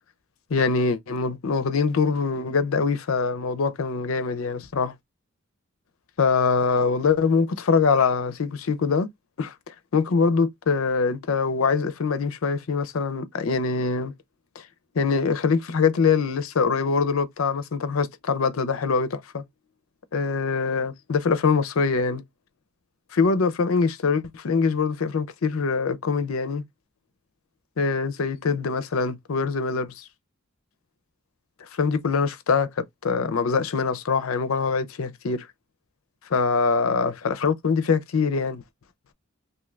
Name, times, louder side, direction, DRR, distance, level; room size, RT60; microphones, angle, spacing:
voice 1, 0.5-4.9 6.2-9.1 9.4-14.1 14.6-14.7 14.9-19.4 20.1-22.2 23.1-26.6 27.8-30.0 31.8-35.5 36.3-38.6, left 5 dB, 85° left, 0.5 m, -23 dB
2.7 x 2.5 x 3.2 m
head